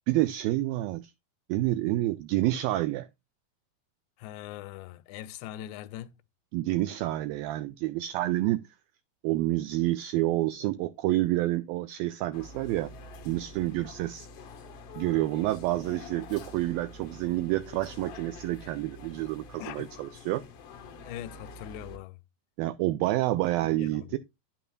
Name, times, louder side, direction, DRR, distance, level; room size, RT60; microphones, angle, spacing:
voice 1, 0.1-1.1 1.5-3.1 6.5-8.6 9.2-12.9 13.3-14.3 15.0-20.4 22.6-24.2, right 16 dB, 85° right, 2.0 m, -28 dB
voice 2, 4.2-6.1 19.6-19.9 21.1-22.2 23.6-24.2, left 13 dB, 90° left, 2.9 m, -41 dB
sound 1, 12.3-22.0, left 3 dB, 70° left, 1.4 m, -46 dB
11.0 x 8.8 x 2.3 m
omnidirectional pair, 4.8 m